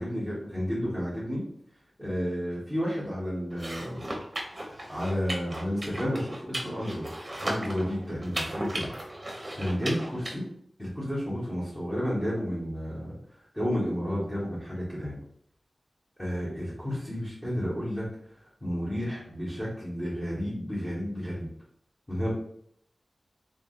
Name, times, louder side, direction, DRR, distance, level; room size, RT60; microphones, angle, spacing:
voice 1, 0.0-1.4 2.0-4.1 4.9-7.1 7.4-8.9 9.5-10.4 10.8-13.1 13.5-15.2 16.2-18.0 18.6-21.5 22.1-22.3, equal, 15° left, -10 dB, 1.3 m, -31 dB
sound 1, 3.5-10.3, right 1 dB, 30° right, 0.8 m, -36 dB
3.7 x 3.7 x 2.5 m, 0.68 s
wide cardioid pair, 95°, 0 cm